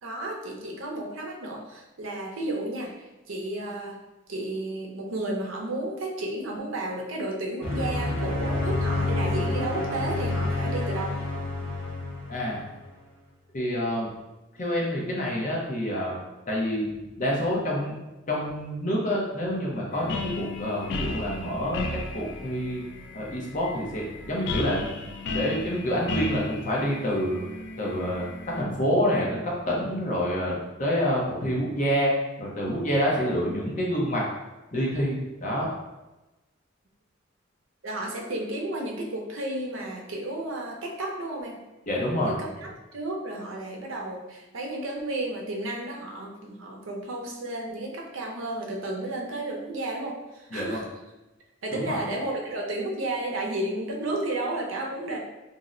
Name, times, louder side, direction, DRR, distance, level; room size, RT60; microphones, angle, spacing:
voice 1, 0.0-4.0 4.3-11.2 37.8-41.6 42.3-50.8 51.6-55.2, right 1 dB, 85° right, 0 dB, 0.6 m, -32 dB
sound 1, 7.6-12.7, left 2 dB, 10° left, 0.8 m, -28 dB
voice 2, 12.3-12.6 13.5-14.1 14.5-16.2 16.5-16.9 17.2-18.0 18.3-21.8 22.1-22.8 23.1-24.9 25.3-27.4 27.8-32.1 32.4-34.3 34.7-35.7 41.9-42.4 50.5-50.8 51.7-52.0, equal, 40° left, -3 dB, 0.8 m, -27 dB
sound 2, 19.9-28.6, left 3 dB, 60° left, 0.3 m, -35 dB
2.7 x 2.1 x 3.6 m, 1.1 s
head